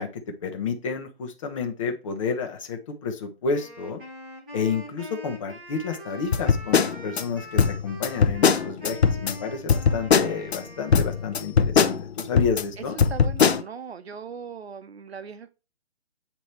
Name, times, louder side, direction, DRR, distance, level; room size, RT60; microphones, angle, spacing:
voice 1, 0.0-4.0 4.5-13.0, left 5 dB, 30° left, 1.0 m, -30 dB
Wind instrument woodwind instrument, 3.5-11.7, equal, 5° right, 0.5 m, -43 dB
sound 1, 6.3-7.2 7.6-9.3 9.7-10.6 10.9-12.6 13.0-13.6, left 6 dB, 70° left, 0.7 m, -20 dB
voice 2, 13.1-15.5, right 6 dB, 70° right, 0.9 m, -39 dB
8.4 x 3.0 x 4.4 m
figure-of-eight pair, 150°, 33 cm